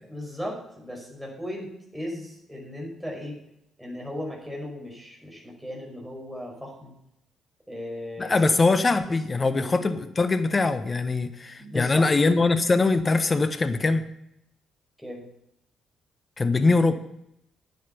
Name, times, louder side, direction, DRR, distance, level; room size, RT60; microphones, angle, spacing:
voice 1, 0.0-3.4 3.8-6.9 7.7-8.4 9.3-9.8 11.6-12.1 15.0-15.2, equal, ahead, -2 dB, 5.4 m, -36 dB
voice 2, 8.2-14.0 16.4-17.0, left 3 dB, 30° left, 10 dB, 1.1 m, -22 dB
9.4 x 9.3 x 6.9 m, 0.79 s
hypercardioid pair, 45°, 0 cm